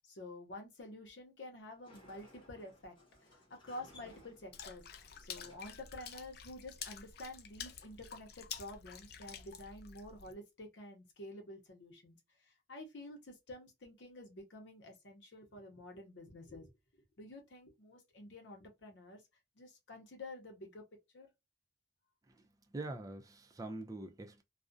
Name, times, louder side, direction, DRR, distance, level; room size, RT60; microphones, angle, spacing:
voice 1, 0.0-2.9 3.2-4.8 5.2-12.2 12.4-16.7 17.2-19.2 19.6-20.8 21.1-21.3, left 1 dB, 85° left, 0.7 m, -50 dB
Sliding door, 1.6-9.2, left 1 dB, 25° left, 0.8 m, -63 dB
Water / Splash splatter, 4.5-10.3, left 8 dB, 60° left, 0.4 m, -49 dB
voice 2, 22.7-24.4, right 2 dB, 20° right, 0.3 m, -44 dB
2.4 x 2.1 x 2.5 m
head